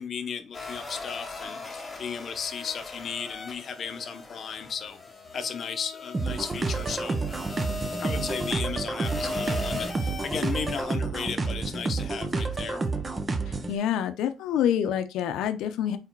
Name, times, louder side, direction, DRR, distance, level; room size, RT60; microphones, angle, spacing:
voice 1, 0.0-5.0 5.3-7.2 8.0-12.8, left 6 dB, 40° left, 0.8 m, -35 dB
sound 1, 0.5-10.8, left 3 dB, 15° left, 1.1 m, -38 dB
sound 2, 6.1-13.8, right 3 dB, 20° right, 0.7 m, -30 dB
voice 2, 13.5-16.0, left 9 dB, 80° left, 0.7 m, -27 dB
4.8 x 4.3 x 4.5 m
cardioid pair, 165°, 0 cm